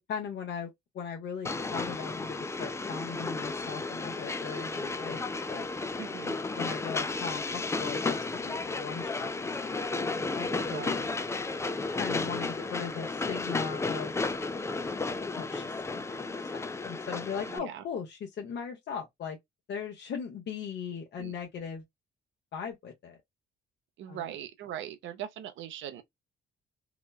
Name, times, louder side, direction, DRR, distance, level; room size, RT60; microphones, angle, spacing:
voice 1, 0.1-0.7 0.9-5.2 5.5-5.6 6.6-10.8 12.0-14.1 15.3-19.4 19.7-21.8 22.5-23.2 24.1-24.2, left 6 dB, 60° left, 0.8 m, -39 dB
Train, 1.4-17.6, left 3 dB, 15° left, 0.3 m, -33 dB
voice 2, 6.0-6.4 10.5-11.1 17.5-17.8 21.2-21.3 24.0-26.0, right 10 dB, 75° right, 0.6 m, -40 dB
3.0 x 2.1 x 2.2 m
cardioid pair, 90°, 20 cm